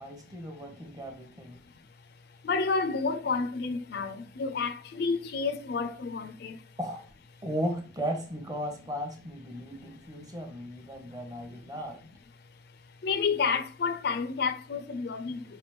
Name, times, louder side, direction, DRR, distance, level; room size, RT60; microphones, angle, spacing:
voice 1, 0.0-1.6 6.8-7.0 7.4-12.0, equal, 20° right, 0.8 m, -36 dB
voice 2, 2.4-6.6 13.0-15.4, left 4 dB, 55° left, 0.4 m, -30 dB
4.6 x 3.3 x 2.9 m
head